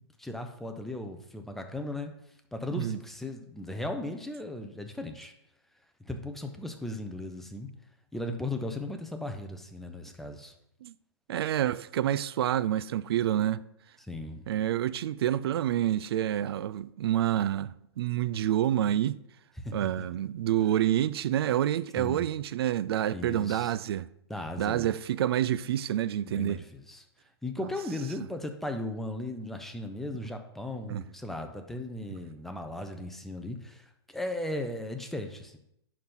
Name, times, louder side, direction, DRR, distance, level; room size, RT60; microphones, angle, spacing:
voice 1, 0.2-2.1 2.5-5.3 6.0-7.7 8.1-10.5 14.0-14.4 19.6-19.8 22.0-22.2 23.1-23.7 24.3-24.9 26.2-27.0 27.4-35.6, left 1 dB, ahead, 0.9 m, -37 dB
voice 2, 11.3-13.7 14.5-19.1 19.7-24.1 24.6-26.6 30.9-31.0, right 11 dB, 65° right, 0.4 m, -28 dB
10.5 x 4.4 x 3.9 m
hypercardioid pair, 115°, 14 cm